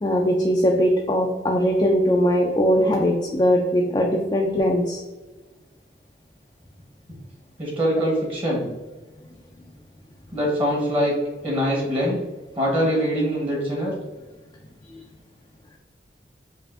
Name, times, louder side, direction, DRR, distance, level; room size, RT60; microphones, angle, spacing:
voice 1, 0.0-5.0 14.9-15.0, equal, 25° left, 0 dB, 0.3 m, -20 dB
voice 2, 7.6-8.7 10.3-11.1 11.4-12.2 12.6-13.9, equal, 30° right, -3 dB, 1.0 m, -23 dB
5.5 x 2.5 x 2.4 m, 1.2 s
head